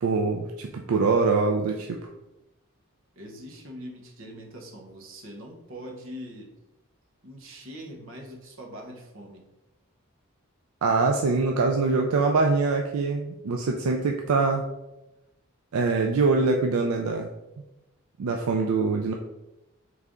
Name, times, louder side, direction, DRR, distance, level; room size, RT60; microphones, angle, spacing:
voice 1, 0.0-2.0 10.8-14.7 15.7-17.3 18.2-19.1, right 4 dB, 80° right, 2 dB, 0.4 m, -24 dB
voice 2, 3.2-6.5 7.2-9.5, equal, 60° right, 1 dB, 0.9 m, -42 dB
3.8 x 3.3 x 3.5 m, 0.95 s
head